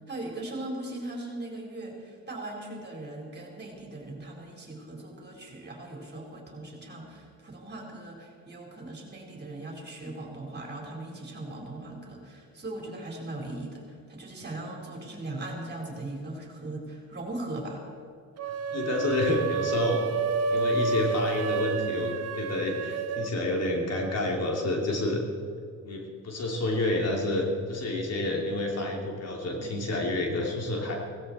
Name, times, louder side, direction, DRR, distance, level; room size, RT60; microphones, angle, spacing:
voice 1, 0.1-17.8, right 2 dB, 35° right, 0 dB, 4.2 m, -39 dB
sound 1, 18.4-23.3, right 4 dB, 55° right, 1.0 m, -30 dB
voice 2, 18.7-20.0 20.5-22.1 22.4-25.2 25.8-30.9, left 1 dB, 55° left, 0 dB, 3.1 m, -29 dB
17.0 x 16.5 x 4.4 m, 2.3 s
cardioid pair, 90°, 30 cm